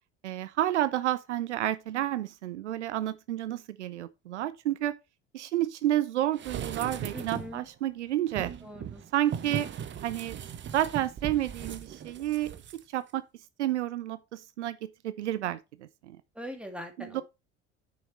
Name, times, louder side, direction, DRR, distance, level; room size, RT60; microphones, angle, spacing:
voice 1, 0.2-5.0 5.3-8.5 9.1-9.7 10.0-10.4 10.7-13.2 13.6-16.2 17.0-17.2, right 13 dB, 75° right, 0.5 m, -30 dB
sound 1, 6.3-7.6 8.3-12.8 13.1-13.2, right 8 dB, 30° right, 1.0 m, -38 dB
voice 2, 7.1-7.7 8.6-9.0 16.4-17.2, equal, 5° right, 2.3 m, -41 dB
9.1 x 6.4 x 3.1 m
figure-of-eight pair, 60°, 35 cm